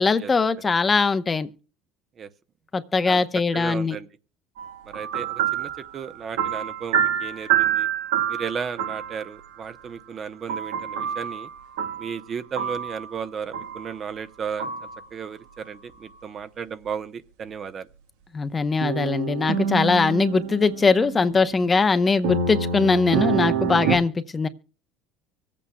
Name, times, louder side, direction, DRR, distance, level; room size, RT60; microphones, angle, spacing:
voice 1, 0.0-1.5 2.7-4.0 18.3-24.5, left 4 dB, 25° left, 0.8 m, -21 dB
voice 2, 3.5-4.1 4.9-7.9 8.3-11.5 12.0-17.9, right 6 dB, 40° right, 0.8 m, -34 dB
sound 1, 4.6-9.3 10.5-12.2 12.6-13.1 13.5-13.9 14.6-15.0 18.8-21.9 22.2-24.0, right 8 dB, 90° right, 1.2 m, -27 dB
24.5 x 8.5 x 2.2 m
supercardioid pair, 90°, 0 cm